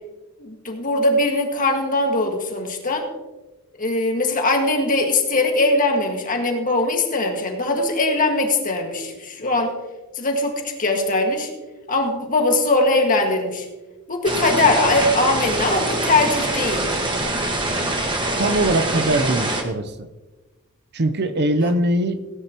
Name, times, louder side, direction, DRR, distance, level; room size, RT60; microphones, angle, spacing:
voice 1, 0.4-3.1 3.8-9.7 10.2-11.5 11.9-13.7 14.1-16.9, left 2 dB, 40° left, 3 dB, 1.8 m, -21 dB
sound 1, 14.2-19.6, right 2 dB, 20° right, 1.5 m, -24 dB
voice 2, 18.4-20.1 20.9-22.2, right 1 dB, 50° right, 9 dB, 0.7 m, -21 dB
17.5 x 10.0 x 3.0 m, 1.2 s
head